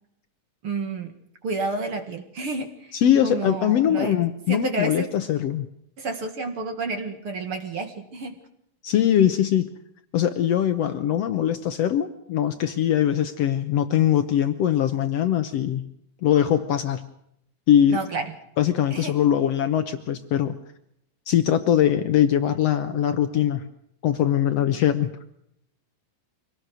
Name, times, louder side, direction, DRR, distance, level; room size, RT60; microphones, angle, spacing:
voice 1, 0.6-1.1 1.4-3.0 3.2-4.2 4.5-5.1 6.0-8.4 17.9-18.3 18.9-19.2, right 3 dB, 45° right, 7 dB, 2.2 m, -30 dB
voice 2, 2.9-5.7 8.8-9.7 10.1-15.9 16.2-17.1 17.7-18.0 18.6-20.6 21.3-23.7 24.0-25.1, left 10 dB, 75° left, 9 dB, 1.4 m, -21 dB
25.0 x 18.5 x 6.3 m, 0.74 s
omnidirectional pair, 4.1 m